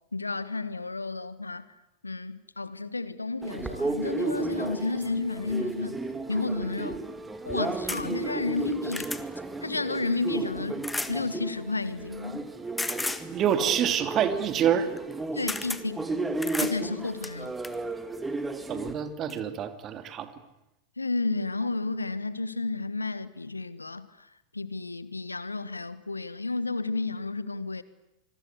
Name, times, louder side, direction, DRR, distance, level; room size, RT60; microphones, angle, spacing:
voice 1, 0.1-1.7 2.0-6.0 6.3-7.0 7.4-9.1 9.6-12.5 15.3-16.1 16.6-17.5 21.0-24.3 24.5-27.8, left 3 dB, 80° left, 1.3 m, -32 dB
sound 1, 3.4-18.9, right 2 dB, 10° right, 2.6 m, -34 dB
sound 2, 7.9-8.0 8.6-9.2 10.8-11.2 12.8-13.3 15.0-15.1 15.5-15.8 16.4-16.8 17.2-17.8 18.8-18.9 19.3-19.4, left 2 dB, 10° left, 1.8 m, -33 dB
voice 2, 13.3-14.9 18.7-20.3, right 9 dB, 30° right, 2.6 m, -26 dB
27.0 x 21.5 x 9.5 m
figure-of-eight pair, 90°, 0 cm